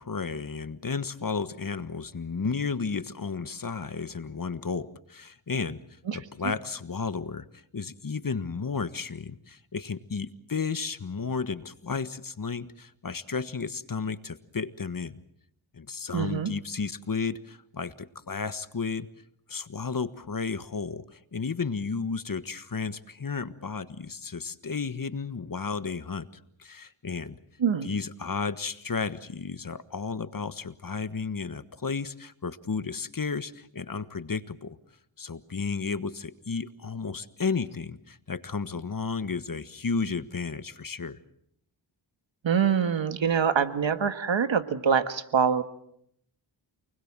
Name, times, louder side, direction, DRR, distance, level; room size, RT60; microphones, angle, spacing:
voice 1, 0.0-5.8 6.1-7.5 7.7-15.2 15.7-19.1 19.5-26.3 26.6-27.4 27.8-34.8 35.2-41.2, left 5 dB, 45° left, 13 dB, 1.5 m, -33 dB
voice 2, 6.1-6.5 16.1-16.5 27.6-27.9 42.4-45.6, right 7 dB, 70° right, 10 dB, 1.7 m, -25 dB
29.0 x 20.5 x 7.5 m, 0.73 s
cardioid pair, 45°, 47 cm